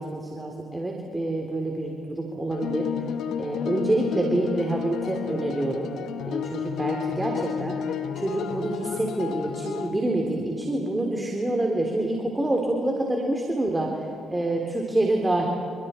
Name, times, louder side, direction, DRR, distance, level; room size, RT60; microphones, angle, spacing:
voice 1, 0.0-2.8 3.4-5.9 6.2-15.5, right 1 dB, 15° right, 1 dB, 3.4 m, -27 dB
sound 1, 2.5-9.9, left 8 dB, 65° left, 1.4 m, -31 dB
29.5 x 29.5 x 4.5 m, 2.7 s
hypercardioid pair, 50°, 0 cm